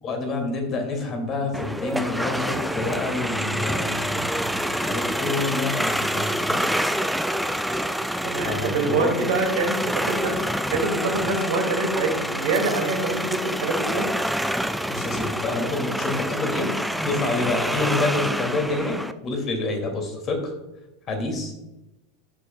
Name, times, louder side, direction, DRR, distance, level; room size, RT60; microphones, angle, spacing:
voice 1, 0.0-6.6 8.4-9.1 14.9-20.5 21.1-21.5, left 3 dB, 35° left, 4 dB, 2.5 m, -28 dB
sound 1, 1.5-19.1, equal, ahead, 0.5 m, -27 dB
voice 2, 8.2-14.1, right 3 dB, 70° right, 2 dB, 2.4 m, -25 dB
14.0 x 6.7 x 2.3 m, 0.95 s
hypercardioid pair, 90°, 0 cm